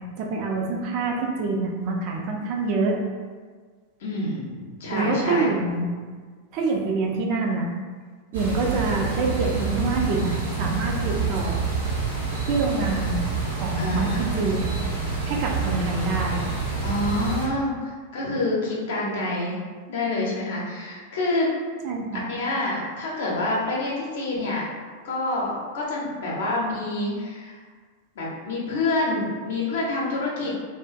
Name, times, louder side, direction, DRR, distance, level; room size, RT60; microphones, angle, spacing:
voice 1, 0.2-3.0 4.9-5.9 6.5-7.7 8.3-11.6 12.5-13.2 13.5-14.7 15.2-16.4 21.8-22.3, right 3 dB, 45° right, 0 dB, 0.4 m, -26 dB
voice 2, 4.0-5.5 13.8-14.5 16.8-19.6 19.9-21.5 22.3-24.6 25.0-27.6 28.1-30.6, left 2 dB, 60° left, -4 dB, 0.7 m, -27 dB
sound 1, 8.3-17.5, right 4 dB, 75° right, 1.0 m, -27 dB
2.4 x 2.4 x 2.3 m, 1.5 s
figure-of-eight pair, 90°, 0 cm